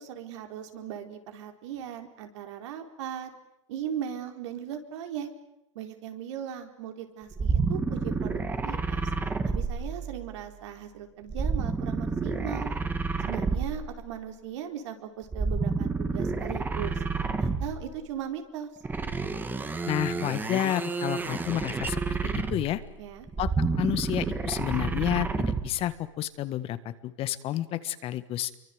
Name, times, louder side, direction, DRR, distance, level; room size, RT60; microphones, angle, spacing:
voice 1, 0.0-3.3 3.7-5.3 5.7-9.0 9.4-12.7 13.3-17.0 17.4-18.7 23.0-23.3, right 9 dB, 65° right, 5 dB, 4.3 m, -38 dB
sound 1, 7.3-10.4 11.3-14.0 15.3-17.9 18.8-22.8 23.3-25.8, right 4 dB, 10° right, 1.9 m, -29 dB
voice 2, 19.9-22.8 23.4-23.5 23.8-28.5, left 13 dB, 35° left, 13 dB, 1.5 m, -30 dB
28.0 x 23.5 x 8.0 m, 0.83 s
hypercardioid pair, 125°, 16 cm